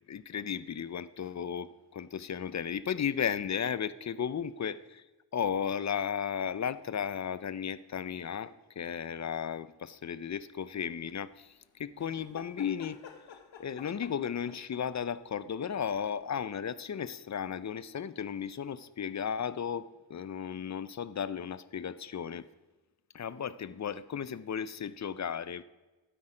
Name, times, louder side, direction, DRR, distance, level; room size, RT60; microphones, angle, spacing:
voice 1, 0.1-5.0 5.3-13.0 13.6-22.5 23.1-25.6, left 8 dB, 40° left, 16 dB, 0.5 m, -35 dB
sound 1, 12.0-15.0 16.4-16.5, left 7 dB, 90° left, 1.1 m, -51 dB
12.5 x 8.6 x 5.0 m, 1.2 s
wide cardioid pair, 115°, 43 cm